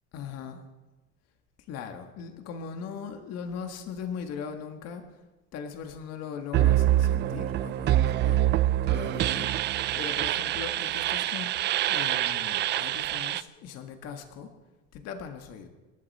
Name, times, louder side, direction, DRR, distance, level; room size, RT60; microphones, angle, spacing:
voice 1, 0.1-0.6 1.7-5.0 5.5-8.4 8.9-9.5 9.9-11.5 11.9-14.5 14.9-15.7, left 6 dB, 55° left, 6 dB, 1.7 m, -39 dB
sound 1, 6.5-13.4, right 13 dB, 35° right, 0.4 m, -25 dB
26.5 x 11.5 x 4.3 m, 1.1 s
cardioid pair, 165°, 30 cm